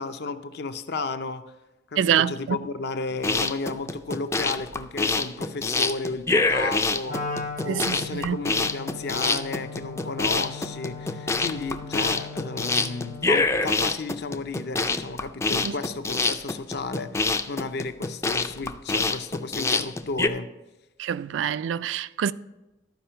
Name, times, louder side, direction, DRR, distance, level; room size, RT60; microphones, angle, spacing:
voice 1, 0.0-1.4 1.9-7.2 7.6-20.5, left 3 dB, 60° left, 0.6 m, -33 dB
voice 2, 2.0-2.6 7.7-8.4 15.6-15.7 21.0-22.3, right 9 dB, 85° right, 0.3 m, -26 dB
sound 1, 3.1-20.3, left 3 dB, 15° left, 0.3 m, -26 dB
Wind instrument woodwind instrument, 7.1-13.4, left 3 dB, 45° left, 1.0 m, -38 dB
12.0 x 5.0 x 5.6 m
head